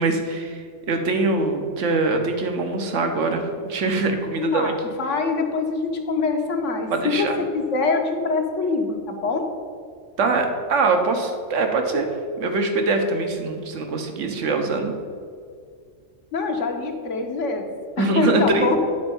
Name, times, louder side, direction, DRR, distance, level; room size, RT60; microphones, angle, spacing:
voice 1, 0.0-4.7 6.9-7.3 10.2-12.1 12.4-14.9 18.0-18.8, right 3 dB, 80° right, 5 dB, 1.3 m, -23 dB
voice 2, 4.4-4.7 5.0-7.3 7.5-9.4 16.3-17.7 18.0-18.8, left 4 dB, 80° left, 3 dB, 1.4 m, -24 dB
10.0 x 4.4 x 7.1 m, 2.1 s
omnidirectional pair, 1.3 m